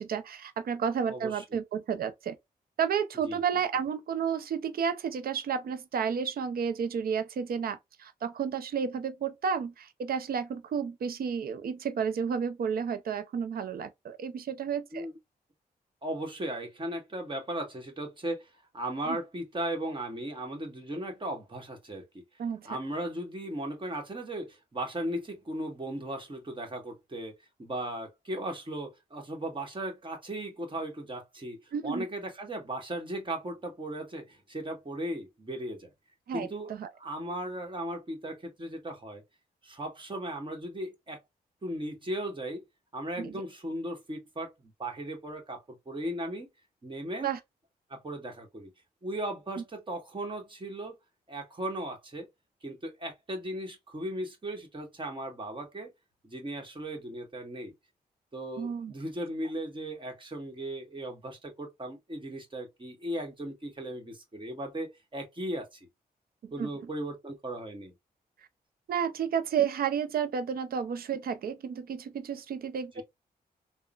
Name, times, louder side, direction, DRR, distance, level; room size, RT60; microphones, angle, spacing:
voice 1, 0.0-2.4 2.8-15.1 19.1-19.2 22.4-22.7 31.7-32.0 36.3-36.9 43.2-43.4 47.2-47.4 49.6-49.7 58.6-58.9 66.4-66.7 68.9-73.0, right 7 dB, 65° right, 0.5 m, -31 dB
voice 2, 1.1-1.4 3.2-3.4 14.9-15.2 16.0-22.2 22.6-27.3 27.6-35.9 36.3-36.7 37.0-39.2 39.6-41.2 41.6-42.7 42.9-46.5 46.8-47.3 47.9-48.7 49.0-51.0 51.3-52.3 52.6-55.9 56.2-57.7 58.3-65.9 66.5-67.9 73.0-73.1, right 1 dB, 30° right, 1.3 m, -37 dB
3.6 x 2.1 x 2.3 m
cardioid pair, 65°, 17 cm